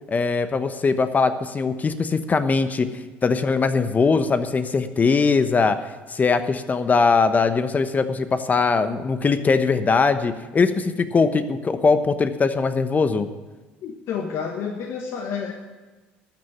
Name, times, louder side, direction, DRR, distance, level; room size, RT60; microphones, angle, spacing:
voice 1, 0.1-2.9 3.2-5.8 6.1-13.3, left 4 dB, 30° left, 11 dB, 1.1 m, -21 dB
voice 2, 13.8-15.5, left 6 dB, 60° left, 4 dB, 1.2 m, -29 dB
13.5 x 6.5 x 9.4 m, 1.2 s
hypercardioid pair, 65°, 5 cm